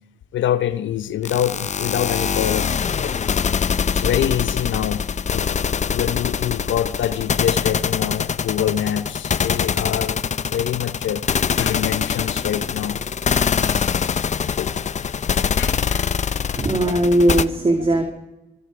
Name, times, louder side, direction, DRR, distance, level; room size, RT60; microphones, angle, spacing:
voice 1, 0.3-2.7 3.0-3.1 3.9-5.5 5.9-10.2 10.5-13.0 13.5-13.7 14.6-14.7 15.0-15.1 15.5-16.7, left 10 dB, 70° left, 1.0 m, -25 dB
sound 1, 1.2-17.5, left 6 dB, 35° left, 0.7 m, -23 dB
voice 2, 16.6-18.0, right 1 dB, 30° right, 2.5 m, -18 dB
25.0 x 22.5 x 5.0 m
cardioid pair, 90°, 20 cm